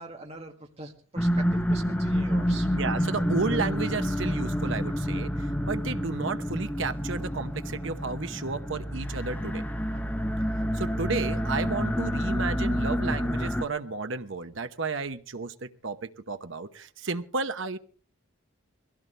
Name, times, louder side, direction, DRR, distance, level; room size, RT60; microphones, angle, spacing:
voice 1, 0.0-2.7, right 2 dB, 30° right, 1 dB, 1.9 m, -43 dB
sound 1, 1.2-13.6, equal, 10° left, 0.8 m, -28 dB
voice 2, 2.7-9.6 10.7-17.8, right 4 dB, 60° right, 9 dB, 0.9 m, -32 dB
21.5 x 16.5 x 3.3 m, 0.41 s
head